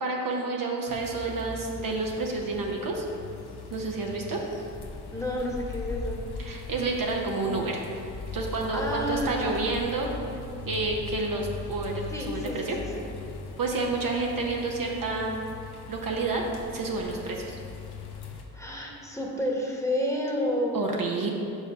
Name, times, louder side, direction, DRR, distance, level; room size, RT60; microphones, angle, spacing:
voice 1, 0.0-3.0 3.7-4.4 6.4-7.8 8.3-10.1 10.6-12.8 13.6-15.3 15.9-16.4 16.7-17.6 20.7-21.3, right 3 dB, 50° right, 0 dB, 0.9 m, -29 dB
sound 1, 0.9-18.4, left 4 dB, 60° left, 0.9 m, -40 dB
voice 2, 5.1-6.2 8.7-9.7 12.1-13.1 18.5-20.9, equal, 5° left, -2 dB, 1.3 m, -30 dB
5.3 x 5.0 x 5.1 m, 2.8 s
supercardioid pair, 45°, 43 cm